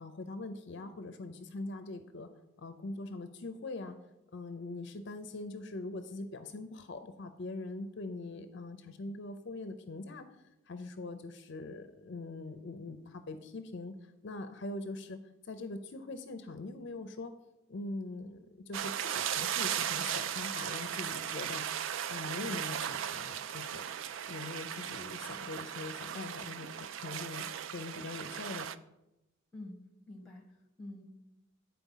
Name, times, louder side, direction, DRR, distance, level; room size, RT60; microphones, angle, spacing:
voice 1, 0.0-2.3 2.6-4.0 4.3-10.3 10.7-17.3 17.7-21.7 22.1-23.8 24.3-28.7, left 2 dB, 55° left, 8 dB, 0.5 m, -42 dB
sound 1, 18.7-28.8, right 9 dB, 60° right, 0.3 m, -37 dB
voice 2, 29.5-31.1, left 1 dB, ahead, 1 dB, 1.2 m, -48 dB
9.1 x 4.3 x 5.5 m, 0.92 s
head